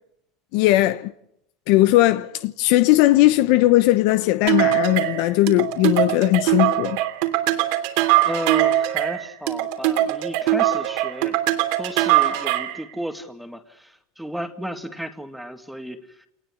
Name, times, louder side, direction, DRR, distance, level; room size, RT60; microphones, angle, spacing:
voice 1, 0.5-1.1 1.7-7.0, left 17 dB, 70° left, 0.9 m, -18 dB
sound 1, 4.5-12.8, right 14 dB, 70° right, 3.1 m, -21 dB
voice 2, 8.2-11.4 11.8-16.3, equal, ahead, 2.1 m, -33 dB
28.0 x 19.5 x 8.6 m
supercardioid pair, 105°, 0 cm